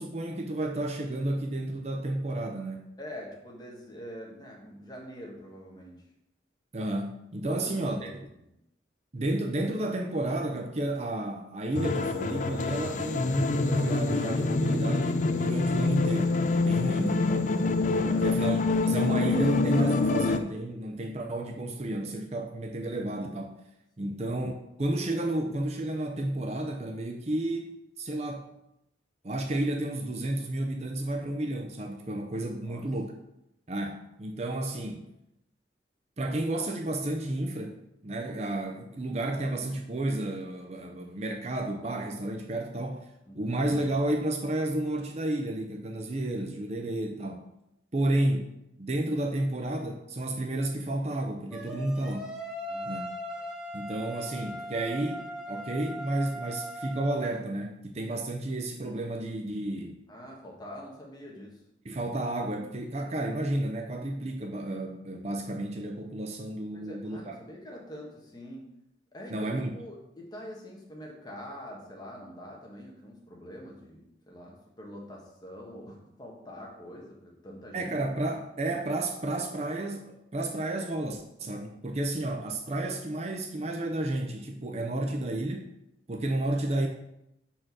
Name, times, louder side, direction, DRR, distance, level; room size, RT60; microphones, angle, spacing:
voice 1, 0.0-2.9 6.7-8.3 9.1-17.3 18.0-18.6 18.8-23.6 24.0-24.5 24.8-28.5 29.2-33.1 33.7-35.0 36.2-37.8 38.0-43.1 43.3-47.5 47.9-48.5 48.8-52.4 52.9-53.1 53.7-60.0 61.8-67.3 69.3-69.8 77.7-85.7 86.1-86.9, right 1 dB, 35° right, 3 dB, 0.6 m, -31 dB
voice 2, 3.0-6.0 7.5-8.4 18.1-18.4 24.0-24.2 32.7-32.8 43.3-43.6 52.7-52.9 60.1-61.6 66.7-68.7 69.1-78.0, equal, 20° left, -2 dB, 1.4 m, -45 dB
sound 1, 11.8-20.4, left 3 dB, 45° left, 0.4 m, -26 dB
sound 2, 51.5-57.3, equal, 5° right, 0.9 m, -39 dB
5.0 x 4.4 x 6.0 m, 0.82 s
head